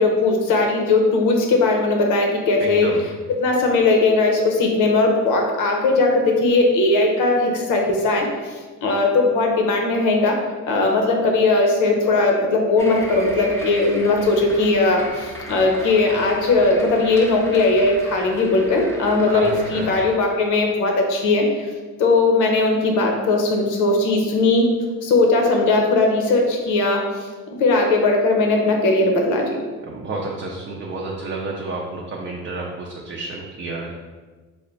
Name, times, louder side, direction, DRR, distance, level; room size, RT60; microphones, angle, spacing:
voice 1, 0.0-2.9 3.4-10.4 10.7-21.7 22.0-24.7 25.0-27.3 27.6-29.6, left 3 dB, 85° left, 1 dB, 0.7 m, -18 dB
voice 2, 2.6-3.0 19.2-19.9 29.9-33.9, right 3 dB, 45° right, -2 dB, 0.5 m, -30 dB
sound 1, 12.8-20.1, equal, 10° left, 0.6 m, -37 dB
3.4 x 2.1 x 3.9 m, 1.4 s
cardioid pair, 90°, 30 cm